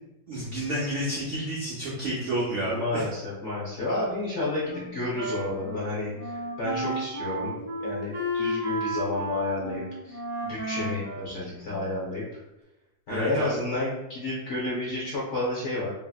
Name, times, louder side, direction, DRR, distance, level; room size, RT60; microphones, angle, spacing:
voice 1, 0.3-3.0 13.1-13.6, right 1 dB, 75° right, -6 dB, 0.6 m, -30 dB
voice 2, 2.7-12.3 13.1-15.9, left 2 dB, 60° left, -6 dB, 0.7 m, -31 dB
Wind instrument woodwind instrument, 4.6-12.1, right 1 dB, 20° left, 0.9 m, -33 dB
2.8 x 2.7 x 2.3 m, 0.95 s
omnidirectional pair, 1.9 m